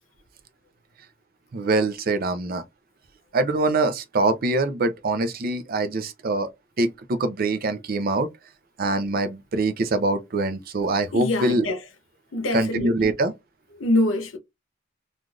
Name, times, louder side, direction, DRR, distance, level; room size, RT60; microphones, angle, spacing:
voice 1, 1.5-2.6 3.3-6.5 6.8-8.3 8.8-11.7 12.5-13.3, right 2 dB, 50° right, 0.5 m, -24 dB
voice 2, 11.1-11.8 12.3-12.9 13.8-14.4, left 1 dB, 80° left, 0.8 m, -24 dB
3.2 x 2.5 x 2.3 m
head